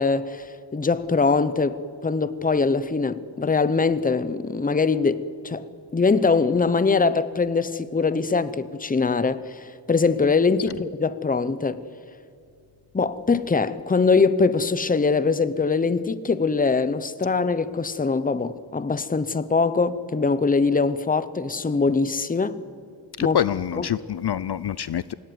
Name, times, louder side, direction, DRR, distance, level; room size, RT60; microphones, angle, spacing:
voice 1, 0.0-5.7 5.9-11.8 12.9-22.6 23.2-23.4 23.8-23.9, left 4 dB, 20° left, 0.7 m, -22 dB
voice 2, 23.2-25.1, left 10 dB, 55° left, 0.6 m, -26 dB
27.0 x 16.5 x 9.4 m
wide cardioid pair, 130°, 46 cm